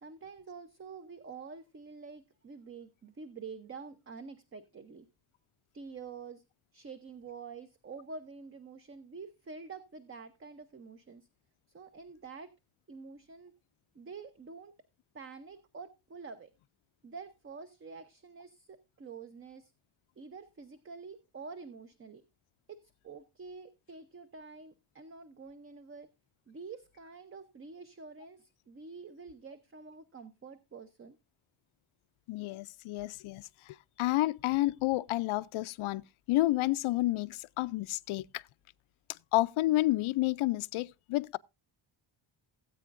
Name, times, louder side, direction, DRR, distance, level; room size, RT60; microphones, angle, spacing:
voice 1, 0.0-5.1 5.7-6.4 6.7-11.3 11.7-12.5 12.9-13.5 13.9-14.7 15.1-16.5 17.0-19.7 20.2-22.2 22.7-26.1 26.5-31.2, right 4 dB, 25° right, 0.6 m, -47 dB
voice 2, 32.3-33.4 34.0-36.0 36.3-38.4 39.3-41.4, left 17 dB, 75° left, 0.6 m, -30 dB
17.5 x 8.4 x 2.5 m
cardioid pair, 155°, 50 cm